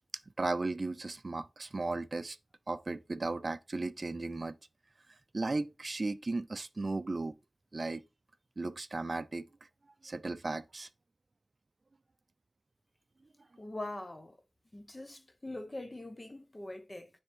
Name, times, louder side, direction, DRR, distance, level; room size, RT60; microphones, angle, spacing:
voice 1, 0.4-2.4 2.7-4.6 5.3-7.3 7.7-8.0 8.6-9.5 10.0-10.9, right 3 dB, 55° right, 0.4 m, -35 dB
voice 2, 13.6-14.4 14.7-17.1, left 1 dB, 30° left, 1.1 m, -43 dB
9.8 x 3.4 x 3.4 m
wide cardioid pair, 60°, 0 cm